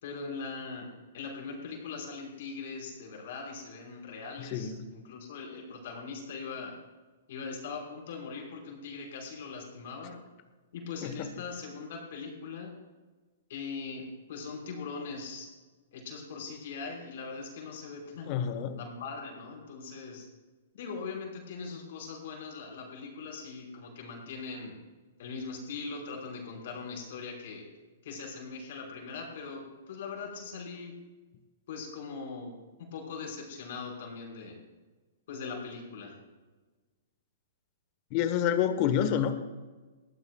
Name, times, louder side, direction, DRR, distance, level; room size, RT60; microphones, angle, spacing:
voice 1, 0.0-6.7 7.3-10.2 10.7-12.7 13.5-15.5 15.9-18.4 18.8-20.3 20.8-24.8 25.2-27.6 28.0-30.9 31.7-32.5 32.8-34.6 35.3-36.1, left 4 dB, 60° left, -1 dB, 5.1 m, -41 dB
voice 2, 4.4-4.9 11.0-11.4 18.2-18.8 38.1-39.3, left 9 dB, 35° left, 9 dB, 1.2 m, -28 dB
20.0 x 15.0 x 2.4 m, 1.3 s
hypercardioid pair, 150°, 0 cm